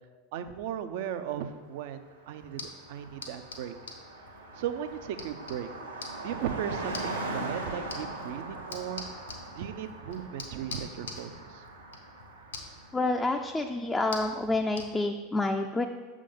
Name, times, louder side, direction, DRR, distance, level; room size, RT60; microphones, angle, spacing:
voice 1, 0.3-3.8 4.6-5.7 6.2-9.0 9.6-11.6, right 9 dB, 60° right, 10 dB, 0.5 m, -36 dB
Car passing by, 1.9-2.0 2.2-13.2, right 2 dB, 85° right, 0.9 m, -41 dB
sound 1, 2.4-14.9, left 3 dB, 80° left, 0.9 m, -46 dB
voice 2, 12.9-15.9, left 2 dB, 15° left, 3 dB, 0.4 m, -28 dB
6.7 x 3.7 x 5.3 m, 1.4 s
figure-of-eight pair, 80°, 0 cm